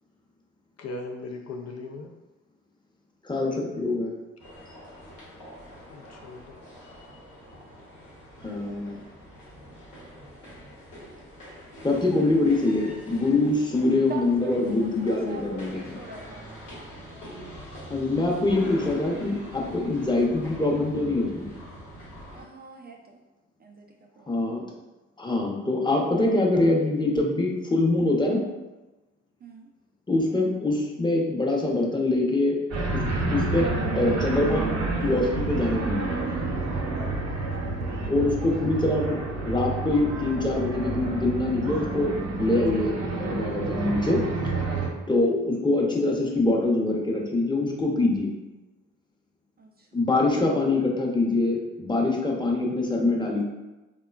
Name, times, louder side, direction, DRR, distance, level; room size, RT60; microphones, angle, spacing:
voice 1, 0.8-2.2 5.9-6.6, left 3 dB, 55° left, 2 dB, 0.4 m, -38 dB
voice 2, 3.2-4.1 8.4-8.9 11.8-15.8 17.9-21.4 24.3-24.7 25.2-28.4 30.1-33.0 33.3-33.7 33.9-34.7 35.0-36.2 38.1-42.1 42.4-44.2 45.1-48.3 49.9-53.4, left 2 dB, 15° left, -2 dB, 0.8 m, -24 dB
sound 1, 4.4-22.4, equal, 90° left, 1.0 m, -44 dB
voice 3, 14.1-16.5 20.0-20.1 22.3-23.2 23.6-24.5 29.4-29.7 37.3-37.8 45.0-45.1 49.6-50.0, right 3 dB, 35° right, 2 dB, 0.4 m, -44 dB
sound 2, 32.7-44.9, right 3 dB, 60° right, 0.7 m, -29 dB
3.6 x 2.2 x 2.3 m, 1.1 s
supercardioid pair, 45°, 30 cm